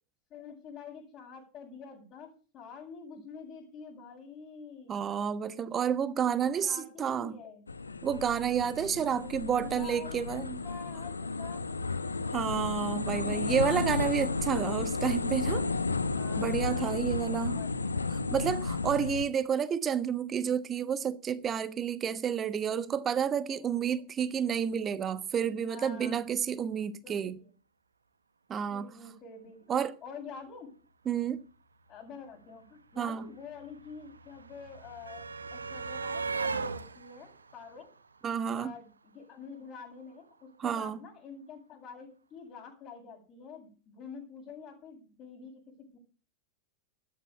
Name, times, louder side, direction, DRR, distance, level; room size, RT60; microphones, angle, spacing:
voice 1, 0.3-5.0 6.4-7.7 8.9-11.6 13.1-13.9 16.1-17.7 23.5-24.0 25.7-26.2 27.0-27.5 28.7-29.7 30.0-30.7 31.9-37.9 38.5-38.9 39.1-45.6 45.9-46.0, left 5 dB, 30° left, 8.0 m, -47 dB
voice 2, 4.9-7.4 8.0-10.6 12.3-15.7 16.4-17.6 18.3-27.4 28.5-28.8 29.7-29.9 31.1-31.4 33.0-33.2 38.2-38.7 40.6-41.0, right 8 dB, 25° right, 1.1 m, -30 dB
sound 1, 7.7-19.2, left 3 dB, 80° left, 1.0 m, -33 dB
sound 2, 32.3-32.4 32.5-38.7 39.9-40.0 40.3-40.4, right 4 dB, 75° right, 1.0 m, -39 dB
13.5 x 9.9 x 7.0 m
figure-of-eight pair, 90°, 0 cm